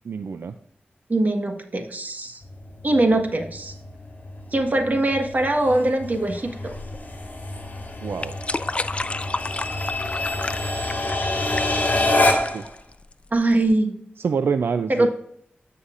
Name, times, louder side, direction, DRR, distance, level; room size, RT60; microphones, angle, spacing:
voice 1, 0.0-0.5 8.0-8.4 12.1-12.7 14.2-15.1, right 6 dB, 85° right, 9 dB, 0.4 m, -27 dB
voice 2, 1.1-2.4 2.8-3.7 4.5-6.5 13.3-14.0 15.0-15.1, right 2 dB, 50° right, 4 dB, 1.5 m, -22 dB
sound 1, 2.4-12.7, left 2 dB, 45° left, 2.8 m, -27 dB
sound 2, 6.7-13.7, left 2 dB, 30° left, 0.4 m, -32 dB
14.0 x 5.7 x 2.5 m, 0.68 s
wide cardioid pair, 65°, 4 cm